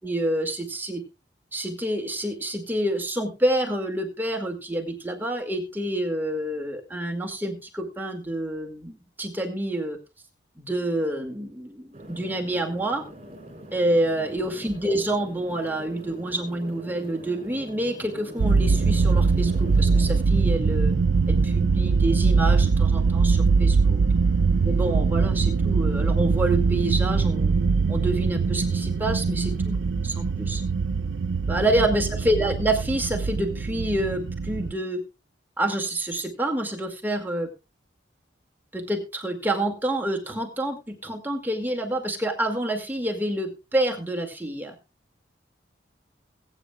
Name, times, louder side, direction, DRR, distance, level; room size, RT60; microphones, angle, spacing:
voice 1, 0.0-1.0 1.5-10.0 10.6-13.0 13.7-20.9 21.3-24.0 24.6-27.5 27.9-29.8 30.0-30.6 31.5-35.0 35.6-37.5 38.7-44.8, right 1 dB, 10° right, 1 dB, 2.1 m, -27 dB
sound 1, 11.9-20.2, right 1 dB, 35° right, 3.6 m, -43 dB
sound 2, 18.4-34.7, right 4 dB, 75° right, 0.5 m, -22 dB
21.5 x 9.2 x 2.3 m, 0.28 s
head